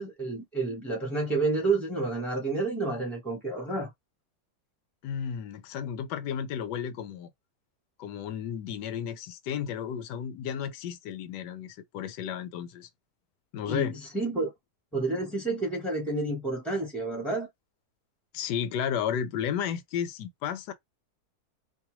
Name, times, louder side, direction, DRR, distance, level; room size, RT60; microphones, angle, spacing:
voice 1, 0.0-3.9 13.7-14.5 14.9-17.5, right 3 dB, ahead, 0.4 m, -30 dB
voice 2, 5.0-7.3 8.0-12.9 13.5-14.0 18.3-20.7, left 8 dB, 85° left, 1.2 m, -33 dB
2.8 x 2.1 x 2.9 m
omnidirectional pair, 1.7 m